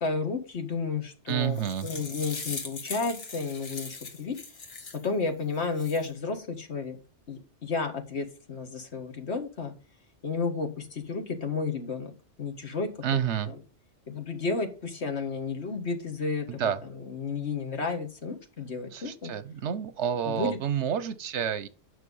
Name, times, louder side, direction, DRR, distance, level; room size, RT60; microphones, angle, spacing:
voice 1, 0.0-4.4 5.0-7.0 7.3-9.7 10.2-12.1 12.4-13.6 14.1-19.3 20.3-20.6, left 4 dB, 70° left, 1.9 m, -32 dB
sound 1, 1.3-5.1 5.5-6.1, left 4 dB, 90° left, 1.8 m, -40 dB
voice 2, 1.3-1.9 13.0-13.5 16.5-16.8 18.9-21.7, right 9 dB, 75° right, 1.1 m, -29 dB
9.6 x 5.6 x 5.4 m
omnidirectional pair, 1.2 m